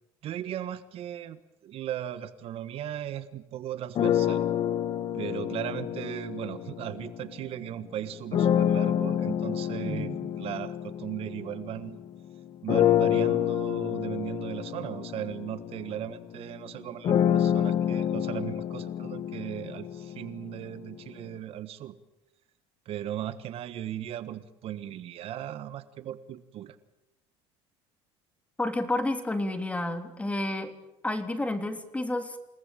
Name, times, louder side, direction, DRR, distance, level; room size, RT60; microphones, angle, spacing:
voice 1, 0.2-4.4 5.1-10.1 10.4-12.0 12.6-21.9 22.8-26.8, right 11 dB, 55° right, 13 dB, 1.4 m, -37 dB
sound 1, 3.9-7.5 8.3-12.1 12.7-20.6, left 10 dB, 45° left, 1.4 m, -28 dB
voice 2, 9.8-10.1 28.6-30.7 31.0-32.4, left 2 dB, 10° left, 7 dB, 3.2 m, -30 dB
28.5 x 19.0 x 9.1 m, 0.93 s
cardioid pair, 115°, 12 cm